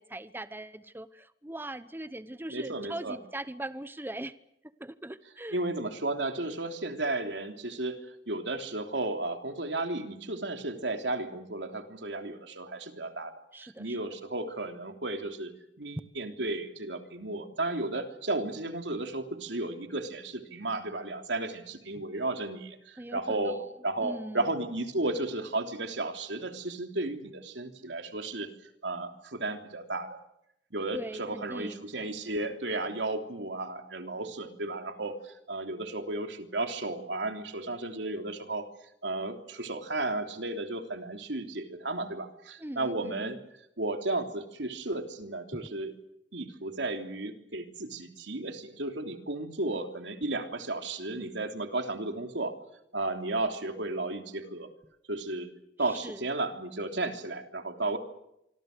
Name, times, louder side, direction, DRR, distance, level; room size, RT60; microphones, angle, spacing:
voice 1, 0.0-4.3 4.6-5.6 13.5-14.0 22.0-22.1 23.0-23.6 24.0-24.6 30.9-31.9 42.6-43.4 45.5-45.6 55.8-56.2, right 1 dB, 10° right, 13 dB, 0.9 m, -41 dB
voice 2, 2.5-3.2 5.5-8.0 8.3-13.3 13.6-15.5 15.8-23.6 23.8-28.5 28.8-30.2 30.7-38.7 39.0-43.4 43.8-45.9 46.3-52.6 52.9-54.7 55.1-55.5 55.8-58.0, right 2 dB, 90° right, 6 dB, 3.2 m, -34 dB
26.0 x 25.0 x 6.7 m, 0.80 s
head